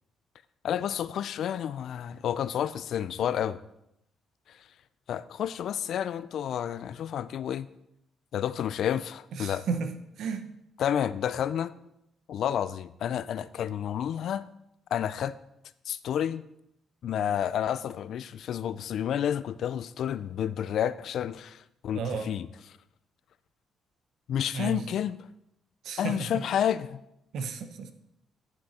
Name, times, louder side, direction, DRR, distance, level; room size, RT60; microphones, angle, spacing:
voice 1, 0.6-3.6 5.1-7.7 8.3-9.7 10.8-11.8 12.3-14.4 14.9-15.4 15.9-16.4 17.0-22.5 24.3-25.2 26.0-27.0, left 9 dB, 70° left, 0.4 m, -30 dB
voice 2, 9.4-9.9 10.2-10.5 21.9-22.3 24.5-24.8 25.8-26.4 27.3-27.9, right 5 dB, 75° right, 0.8 m, -33 dB
10.0 x 6.0 x 4.2 m
cardioid pair, 90°, 0 cm